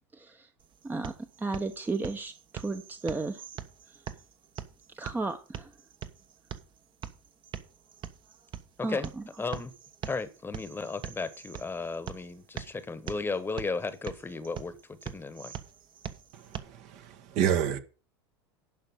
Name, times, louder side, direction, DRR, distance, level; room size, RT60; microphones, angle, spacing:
voice 1, 0.1-0.5 0.8-1.1 1.4-3.4 4.9-5.7 8.8-9.2, right 3 dB, 15° right, 0.9 m, -34 dB
sound 1, 0.6-16.6, right 9 dB, 35° right, 1.2 m, -44 dB
voice 2, 8.8-9.1 9.4-9.7 10.1-15.5, left 4 dB, 15° left, 1.2 m, -35 dB
voice 3, 16.9-17.8, right 9 dB, 55° right, 1.5 m, -27 dB
11.0 x 5.3 x 7.9 m
hypercardioid pair, 95°, 14 cm